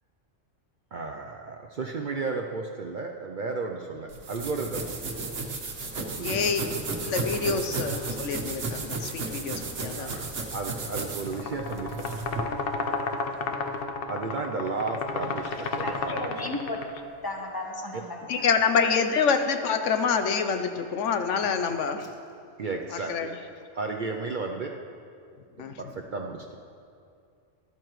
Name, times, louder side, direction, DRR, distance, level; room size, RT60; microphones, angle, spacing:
voice 1, 0.9-4.9 6.0-6.4 9.5-9.6 10.0-12.2 14.1-16.3 17.9-18.0 22.0-22.1 22.6-23.3 23.7-24.7 25.8-26.6, right 3 dB, 55° right, 2 dB, 0.6 m, -33 dB
sound 1, 4.1-12.4, right 3 dB, 70° right, 1.4 m, -33 dB
voice 2, 6.2-6.6 7.0-10.2 18.3-22.1 23.1-23.4 25.6-25.9, left 6 dB, 75° left, 7 dB, 1.0 m, -26 dB
sound 2, 11.3-17.0, left 3 dB, 55° left, 0.9 m, -32 dB
voice 3, 15.8-18.4, left 2 dB, 20° left, 1 dB, 1.0 m, -35 dB
13.5 x 12.5 x 3.1 m, 2.4 s
omnidirectional pair, 1.3 m